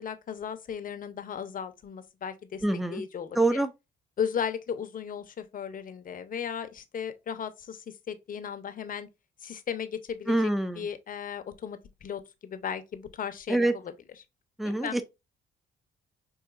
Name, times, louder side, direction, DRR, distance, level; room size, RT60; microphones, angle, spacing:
voice 1, 0.0-2.6 2.9-3.6 4.2-9.1 9.4-10.4 10.8-13.7 14.6-15.0, left 7 dB, 45° left, 0.6 m, -36 dB
voice 2, 2.6-3.0 3.3-3.7 10.3-10.9 13.5-13.7 14.6-15.0, right 2 dB, ahead, 0.4 m, -25 dB
4.7 x 2.6 x 2.4 m
cardioid pair, 90°, 20 cm